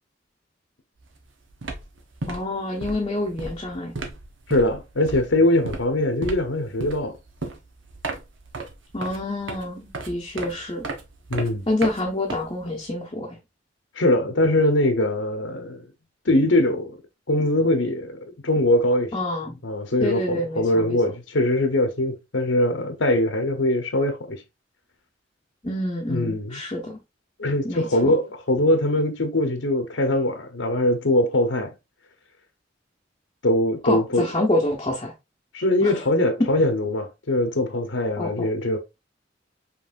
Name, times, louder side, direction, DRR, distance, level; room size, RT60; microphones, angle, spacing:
sound 1, 1.0-1.2 1.5-12.9, right 3 dB, 90° right, 0.9 m, -35 dB
voice 1, 2.3-3.9 8.9-10.9 11.7-13.4 19.1-19.6 20.0-21.0 25.6-27.0 27.6-28.1 33.8-35.1 35.8-36.0 38.2-38.5, left 1 dB, 25° left, 0.8 m, -27 dB
voice 2, 4.5-7.1 11.3-11.7 14.0-15.8 16.2-17.0 17.3-19.1 19.6-24.4 26.1-26.6 27.4-28.2 28.5-31.7 33.4-34.3 35.5-38.8, left 1 dB, 80° left, 0.9 m, -22 dB
5.4 x 3.2 x 2.5 m
head